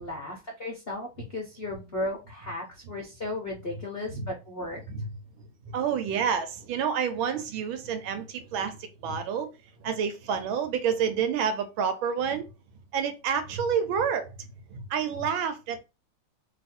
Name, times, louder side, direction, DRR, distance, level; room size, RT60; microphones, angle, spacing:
voice 1, 0.0-4.8, left 2 dB, 50° left, 0.7 m, -35 dB
voice 2, 5.7-9.5 9.8-12.5 12.9-15.8, right 7 dB, 75° right, 1.4 m, -29 dB
3.1 x 2.6 x 4.3 m
omnidirectional pair, 2.3 m